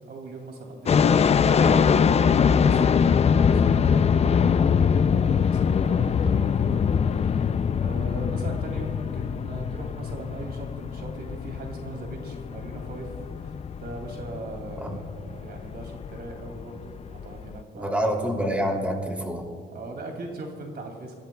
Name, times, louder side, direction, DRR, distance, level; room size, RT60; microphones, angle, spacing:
voice 1, 0.1-1.6 2.2-13.1 13.4-18.1 19.7-21.2, right 2 dB, 55° right, 2 dB, 2.5 m, -39 dB
sound 1, 0.9-17.6, left 7 dB, 30° left, 0.4 m, -23 dB
voice 2, 17.7-19.4, equal, 5° right, 1 dB, 2.8 m, -27 dB
28.0 x 16.0 x 2.3 m, 2.1 s
cardioid pair, 90°, 20 cm